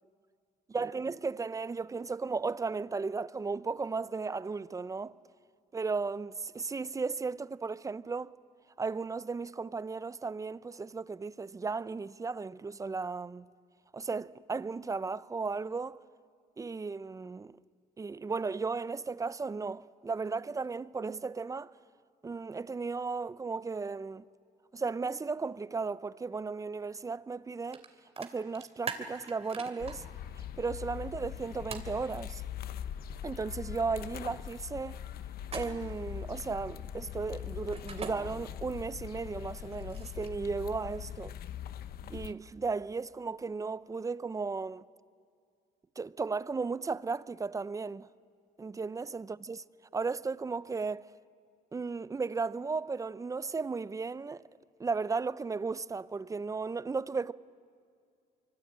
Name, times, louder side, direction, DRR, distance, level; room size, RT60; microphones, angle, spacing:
voice 1, 0.7-5.1 5.7-8.3 8.8-13.5 13.9-16.0 16.6-17.6 18.0-21.7 22.2-24.3 24.7-27.8 28.2-30.0 30.4-32.4 33.2-35.0 35.5-41.3 42.1-44.8 46.0-48.1 48.6-49.6 49.9-51.1 51.7-54.4 54.8-57.3, right 4 dB, 20° right, 0.6 m, -35 dB
sound 1, 27.7-27.9 28.2-29.9 31.7-31.9 35.4-36.0 37.7-38.1 39.5-40.4, right 6 dB, 35° right, 2.9 m, -41 dB
sound 2, 29.8-42.3, left 10 dB, 65° left, 1.1 m, -42 dB
25.0 x 24.0 x 8.8 m
cardioid pair, 110°, 17 cm